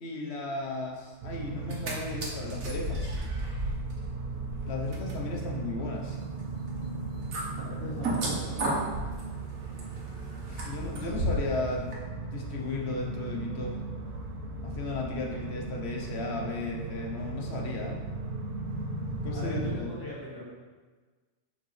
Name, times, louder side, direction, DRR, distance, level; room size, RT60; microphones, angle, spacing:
voice 1, 0.0-3.2 4.7-6.2 10.5-13.8 14.6-18.0 19.2-19.9, left 3 dB, 55° left, 0 dB, 1.1 m, -35 dB
sound 1, 1.2-19.8, right 3 dB, 45° right, 0.8 m, -37 dB
sound 2, 1.5-1.9 2.2-11.6 11.9-12.0, right 1 dB, 90° right, 1.5 m, -35 dB
voice 2, 7.6-8.8 19.3-20.4, left 1 dB, 15° left, -8 dB, 2.0 m, -39 dB
6.7 x 5.4 x 3.2 m, 1.4 s
omnidirectional pair, 1.4 m